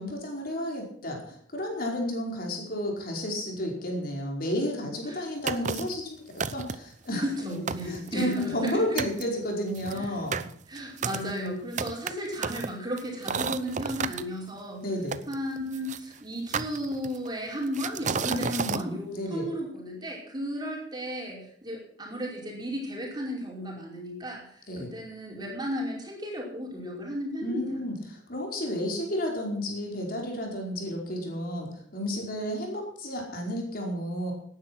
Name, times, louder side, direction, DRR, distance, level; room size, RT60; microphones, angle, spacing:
voice 1, 0.0-6.2 6.5-7.2 7.8-10.4 14.8-15.2 18.3-19.5 24.7-24.9 27.4-34.3, left 1 dB, 55° left, 0 dB, 5.0 m, -32 dB
sound 1, 5.5-6.0 6.4-6.9 7.4-7.5 7.7-8.7 9.0-9.2 9.7-14.2 15.1-16.0 16.5-17.3 17.7-18.8, right 5 dB, 45° right, 0.7 m, -32 dB
voice 2, 7.2-8.8 9.9-10.1 10.7-14.8 15.3-24.4 24.9-27.8, equal, 25° right, -2 dB, 5.3 m, -34 dB
18.5 x 10.0 x 6.2 m, 0.62 s
head